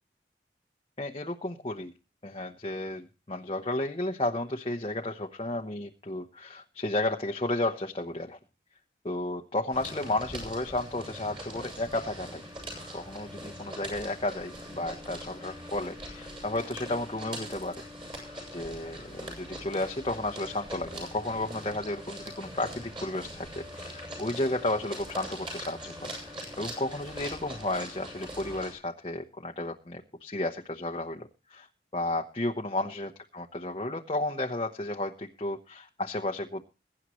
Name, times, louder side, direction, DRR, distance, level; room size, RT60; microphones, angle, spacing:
voice 1, 1.0-1.9 2.2-8.4 9.0-12.4 12.9-17.8 18.5-31.7 31.9-36.6, left 2 dB, 30° left, 2 dB, 0.9 m, -33 dB
sound 1, 9.7-28.7, equal, 25° right, 7.4 m, -42 dB
22.5 x 9.9 x 3.1 m, 0.32 s
head